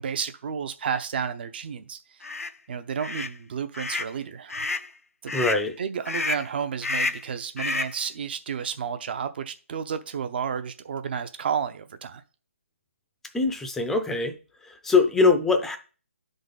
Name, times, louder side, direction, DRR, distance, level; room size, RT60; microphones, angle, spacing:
voice 1, 0.0-2.2 2.7-4.7 5.2-5.4 5.8-12.2, right 7 dB, 45° right, 0.7 m, -31 dB
sound 1, 2.2-2.5 3.0-3.3 3.7-4.1 4.5-4.9 5.3-5.6 6.1-6.5 6.8-7.3 7.6-8.0, left 3 dB, 90° left, 0.6 m, -29 dB
voice 2, 5.3-5.7 13.3-14.3 14.6-15.8, left 4 dB, 5° left, 0.5 m, -22 dB
10.5 x 3.9 x 3.9 m
figure-of-eight pair, 145°, 8 cm